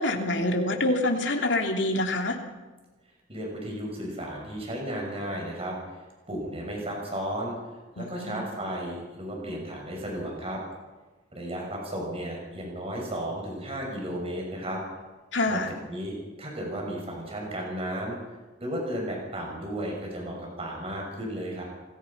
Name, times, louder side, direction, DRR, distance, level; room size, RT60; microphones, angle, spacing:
voice 1, 0.0-2.4 8.0-8.4 15.3-15.7, left 2 dB, 75° left, 2 dB, 3.0 m, -26 dB
voice 2, 3.3-5.8 6.3-7.5 8.0-10.6 11.3-14.8 15.5-18.2 18.6-21.6, right 1 dB, 35° right, 0 dB, 6.8 m, -34 dB
28.0 x 19.0 x 5.7 m, 1.2 s
head